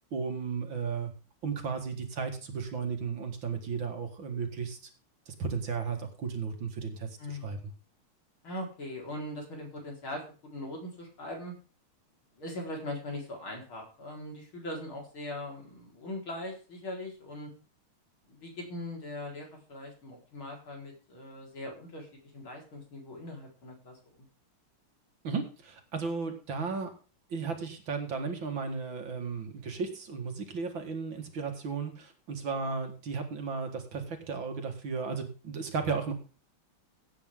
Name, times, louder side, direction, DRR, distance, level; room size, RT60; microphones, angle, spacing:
voice 1, 0.1-1.1 1.4-4.8 5.3-7.6 25.2-26.9 27.3-36.1, right 5 dB, 60° right, 5 dB, 2.5 m, -34 dB
voice 2, 7.2-7.6 8.4-11.5 12.4-17.5 18.2-24.3, left 1 dB, 65° left, 0 dB, 5.4 m, -41 dB
16.0 x 9.2 x 3.8 m, 0.36 s
omnidirectional pair, 2.4 m